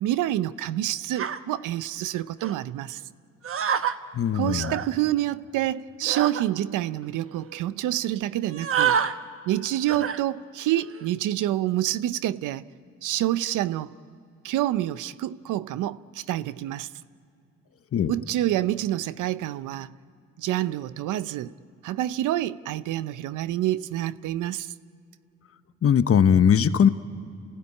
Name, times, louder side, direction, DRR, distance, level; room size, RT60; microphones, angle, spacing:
voice 1, 0.0-3.0 4.3-9.0 9.5-12.7 13.0-13.9 14.4-16.9 18.1-19.9 20.4-21.5 21.8-24.7, right 13 dB, 85° right, 0.7 m, -27 dB
sound 1, 1.2-1.4 2.4-2.6 3.4-4.0 4.5-4.9 6.0-6.4 7.0-7.1 7.3-7.6 8.4-9.1 9.9-10.2 10.7-11.1, right 8 dB, 45° right, 1.0 m, -27 dB
voice 2, 4.1-4.7 17.9-18.1 25.8-26.9, left 8 dB, 50° left, 1.0 m, -19 dB
29.0 x 16.0 x 9.8 m
cardioid pair, 90°, 30 cm